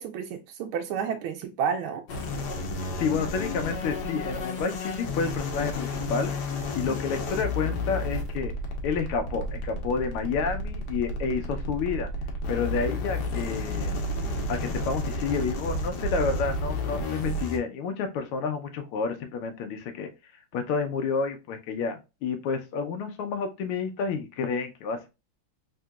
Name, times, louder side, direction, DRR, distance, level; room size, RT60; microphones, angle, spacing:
voice 1, 0.0-2.0, right 7 dB, 80° right, 1.4 m, -30 dB
sound 1, 2.1-17.6, left 2 dB, 60° left, 1.3 m, -31 dB
voice 2, 2.9-8.5 8.8-12.1 12.5-14.0 14.5-20.1 20.5-25.1, left 5 dB, 85° left, 1.6 m, -30 dB
3.8 x 3.6 x 2.2 m
omnidirectional pair, 2.4 m